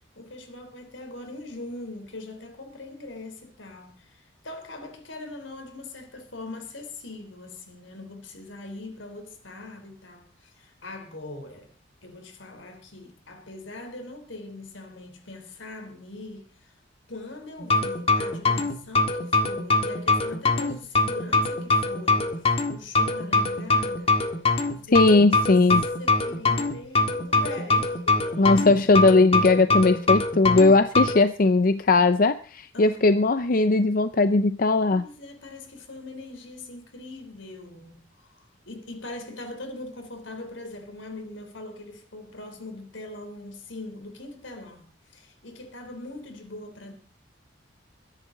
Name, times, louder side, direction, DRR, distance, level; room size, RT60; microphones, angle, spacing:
voice 1, 0.2-11.7 12.0-16.7 17.1-24.2 24.7-25.1 25.4-25.5 26.0-28.5 32.7-33.2 34.9-38.3 38.6-46.9, left 2 dB, 80° left, 3.6 m, -41 dB
sound 1, 17.6-31.2, left 2 dB, 30° left, 1.7 m, -23 dB
voice 2, 24.9-25.8 28.4-35.0, left 3 dB, 45° left, 0.6 m, -19 dB
22.5 x 11.0 x 3.9 m
head